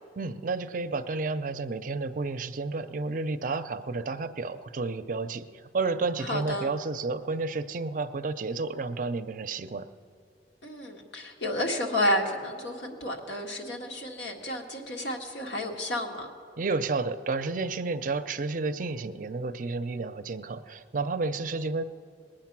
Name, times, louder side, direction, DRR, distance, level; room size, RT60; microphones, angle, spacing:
voice 1, 0.2-9.9 16.6-21.8, right 3 dB, 50° right, 11 dB, 0.5 m, -31 dB
voice 2, 6.2-6.7 10.6-16.3, left 1 dB, 80° left, 1 dB, 1.7 m, -31 dB
20.5 x 8.9 x 6.0 m, 2.4 s
head